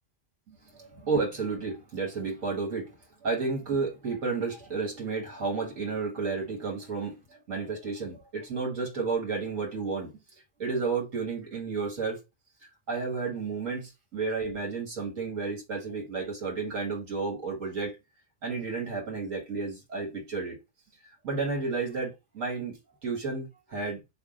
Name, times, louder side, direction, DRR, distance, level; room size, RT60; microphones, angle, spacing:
voice 1, 0.5-2.9 3.2-12.2 12.9-18.0 18.4-20.6 21.2-22.8 23.0-24.0, right 4 dB, 80° right, 1.8 m, -32 dB
3.4 x 2.4 x 3.6 m
omnidirectional pair, 1.3 m